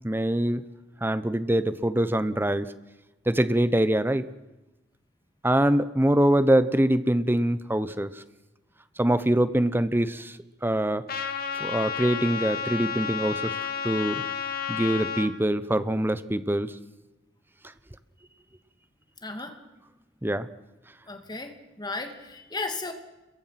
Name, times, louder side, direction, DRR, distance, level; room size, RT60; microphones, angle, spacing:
voice 1, 0.0-0.6 1.0-2.7 3.3-4.3 5.4-8.2 9.0-10.4 10.6-11.0 11.6-14.2 14.7-16.7 20.2-20.5, right 1 dB, 10° right, 13 dB, 1.0 m, -24 dB
Trumpet, 11.1-15.3, left 7 dB, 55° left, 2.1 m, -31 dB
voice 2, 19.2-19.6 21.1-22.9, left 3 dB, 25° left, 5 dB, 2.6 m, -35 dB
30.0 x 22.5 x 6.0 m, 1.1 s
head